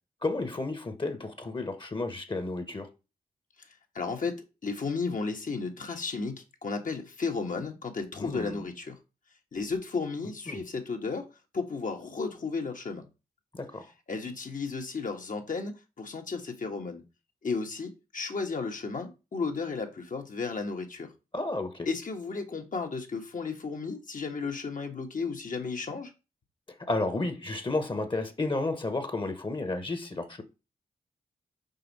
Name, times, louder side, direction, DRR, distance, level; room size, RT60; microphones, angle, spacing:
voice 1, 0.2-2.9 8.2-8.6 10.5-10.6 13.5-13.9 21.3-21.9 26.9-30.4, left 2 dB, 35° left, 1.1 m, -32 dB
voice 2, 3.9-9.0 9.5-11.3 11.5-13.1 14.1-15.7 16.0-17.0 17.4-21.1 21.9-26.1, left 4 dB, 60° left, 1.4 m, -33 dB
5.5 x 4.3 x 4.1 m
cardioid pair, 45°, 16 cm